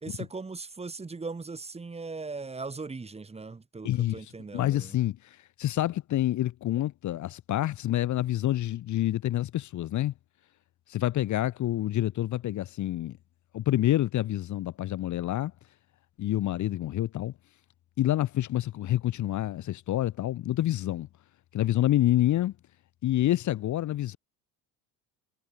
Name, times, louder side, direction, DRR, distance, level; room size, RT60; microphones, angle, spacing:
voice 1, 0.0-4.9, right 4 dB, 15° right, 2.6 m, -39 dB
voice 2, 3.8-4.2 4.5-10.1 10.9-13.2 13.5-15.5 16.2-17.3 18.0-21.1 21.5-22.5 23.0-24.2, left 13 dB, 50° left, 1.2 m, -27 dB
cardioid pair, 130°, 37 cm